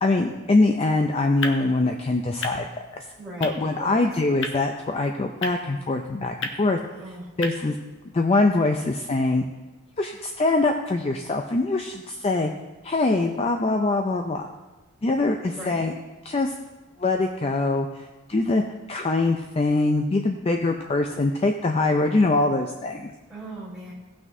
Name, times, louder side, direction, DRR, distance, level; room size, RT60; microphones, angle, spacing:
voice 1, 0.0-3.1 3.4-6.8 7.4-7.8 8.1-9.4 10.0-12.5 12.8-14.5 15.0-15.9 16.3-16.5 17.0-18.6 18.9-23.1, left 2 dB, 25° left, 4 dB, 0.4 m, -23 dB
sound 1, 0.9-7.5, left 3 dB, 55° left, 0.9 m, -38 dB
voice 2, 3.2-4.0 7.0-7.3 15.5-15.9 23.3-23.9, right 1 dB, ahead, -8 dB, 3.1 m, -39 dB
17.5 x 6.0 x 2.7 m, 1.2 s
head